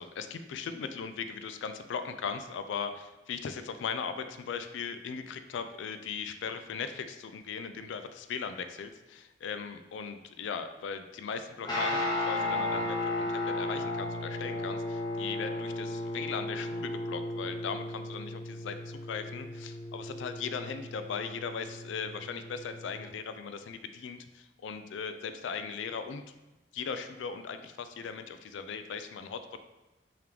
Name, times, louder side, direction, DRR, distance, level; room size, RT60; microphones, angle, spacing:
voice 1, 0.0-26.2 26.7-29.6, left 6 dB, 90° left, 9 dB, 0.3 m, -38 dB
Guitar, 11.6-23.1, left 2 dB, 20° left, 0.7 m, -35 dB
3.6 x 2.9 x 3.4 m, 1.1 s
head